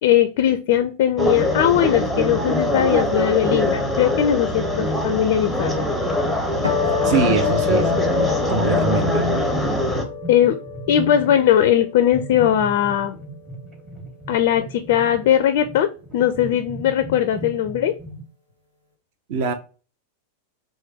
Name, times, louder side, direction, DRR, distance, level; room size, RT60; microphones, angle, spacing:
voice 1, 0.0-5.7 10.3-10.6 10.9-13.1 14.3-15.9 16.1-17.9, left 10 dB, 50° left, 0.4 m, -19 dB
sound 1, 1.2-10.0, left 1 dB, 5° right, 0.7 m, -22 dB
sound 2, 6.6-13.1, left 7 dB, 85° right, 0.9 m, -28 dB
voice 2, 7.0-8.1 8.5-9.3 19.3-19.5, right 5 dB, 50° right, 0.7 m, -23 dB
sound 3, 8.9-9.6 9.9-11.6 12.1-18.2, right 1 dB, 25° right, 1.4 m, -36 dB
3.3 x 2.7 x 3.4 m
figure-of-eight pair, 90°, 0 cm